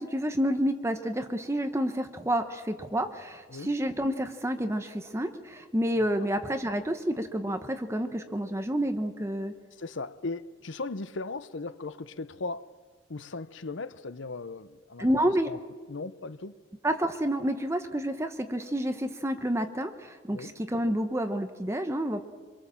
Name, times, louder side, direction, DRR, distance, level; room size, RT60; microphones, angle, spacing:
voice 1, 0.0-9.5 15.0-15.5 16.8-22.2, equal, 15° right, 1.0 m, -29 dB
voice 2, 6.0-6.3 9.8-12.7 13.1-15.2 15.4-15.6 15.9-16.6 20.3-20.5, left 3 dB, 70° left, 0.8 m, -37 dB
26.0 x 22.5 x 7.2 m
head